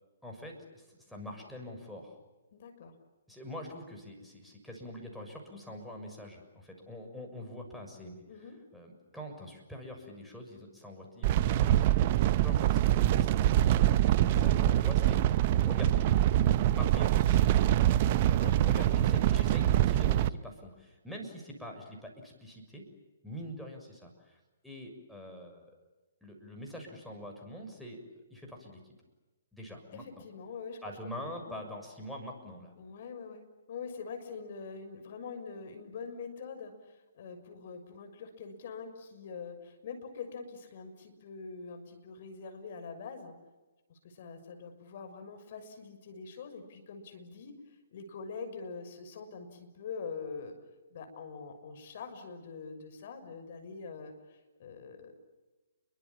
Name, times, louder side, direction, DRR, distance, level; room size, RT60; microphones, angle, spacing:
voice 1, 0.2-2.1 3.3-15.2 15.6-16.1 16.7-17.9 18.5-22.8 23.2-25.7 26.2-28.0 28.3-28.8 29.5-30.2 30.8-32.7, left 1 dB, ahead, 0 dB, 6.8 m, -45 dB
voice 2, 2.5-2.9 8.3-8.6 14.4-14.7 18.4-18.9 29.9-30.8 31.2-31.6 32.8-33.4 33.7-43.3 43.9-50.5 50.9-55.1, left 5 dB, 50° left, 8 dB, 6.4 m, -44 dB
sound 1, 11.2-20.3, right 12 dB, 40° right, 0.9 m, -25 dB
30.0 x 23.5 x 7.4 m, 1.2 s
figure-of-eight pair, 135°, 0 cm